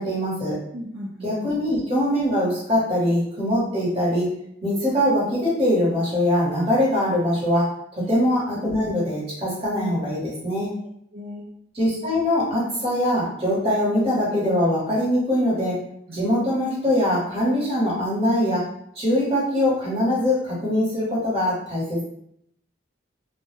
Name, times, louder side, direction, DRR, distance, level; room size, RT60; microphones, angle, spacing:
voice 1, 0.0-0.5 1.2-4.3 4.6-7.7 8.1-10.7 11.7-15.8 16.1-18.6 18.9-22.0, left 1 dB, 30° right, -7 dB, 1.0 m, -22 dB
voice 2, 0.7-1.5 8.0-8.1 11.1-11.4 16.1-16.2, equal, 65° right, -6 dB, 0.5 m, -36 dB
2.2 x 2.0 x 3.0 m, 0.72 s
head